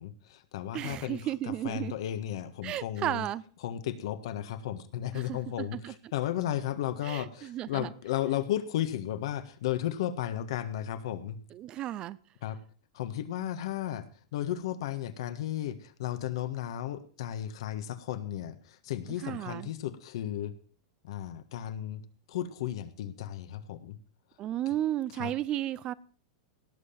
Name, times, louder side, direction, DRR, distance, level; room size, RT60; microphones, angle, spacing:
voice 1, 0.0-3.2 3.6-11.4 12.4-12.6 12.9-14.1 14.3-20.5 21.0-22.0 22.3-24.0 25.2-25.3, left 11 dB, 70° left, 1.4 m, -34 dB
voice 2, 0.7-1.9 2.6-3.4 5.1-5.9 7.0-7.9 11.5-12.2 19.2-19.7 24.4-25.9, right 13 dB, 30° right, 0.5 m, -34 dB
17.5 x 6.8 x 5.8 m
supercardioid pair, 145°, 3 cm